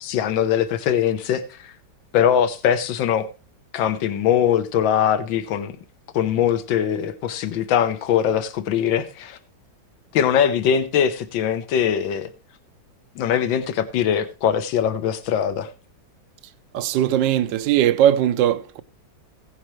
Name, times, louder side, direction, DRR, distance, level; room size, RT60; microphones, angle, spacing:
voice 1, 0.0-1.7 2.1-3.3 3.7-5.8 6.1-9.4 10.1-12.3 13.2-15.7, left 9 dB, 80° left, 1.6 m, -21 dB
voice 2, 16.7-18.8, right 11 dB, 75° right, 1.4 m, -19 dB
16.0 x 10.5 x 3.1 m
omnidirectional pair, 2.1 m